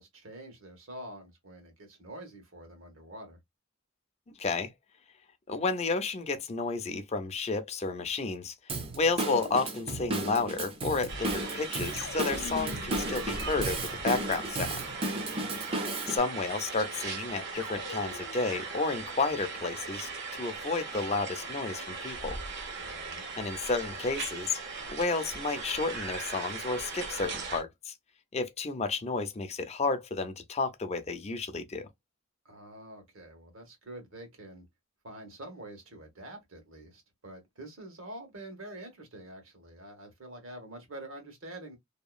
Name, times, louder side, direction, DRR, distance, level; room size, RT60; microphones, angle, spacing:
voice 1, 0.0-3.4 15.1-15.7 22.8-23.3 32.4-34.7 35.0-41.8, right 1 dB, 75° right, 1.3 m, -46 dB
voice 2, 4.4-4.7 5.5-8.5 8.9-14.8 16.1-20.1 20.4-22.4 23.4-24.6 24.9-27.9 28.3-31.9, left 3 dB, 30° left, 0.5 m, -31 dB
Drum kit / Drum, 8.7-16.2, right 2 dB, 30° right, 0.5 m, -34 dB
sound 1, 11.1-27.6, right 4 dB, 55° right, 0.8 m, -39 dB
sound 2, 11.9-14.4 17.5-18.6, left 4 dB, 90° left, 0.5 m, -45 dB
2.8 x 2.3 x 2.4 m
head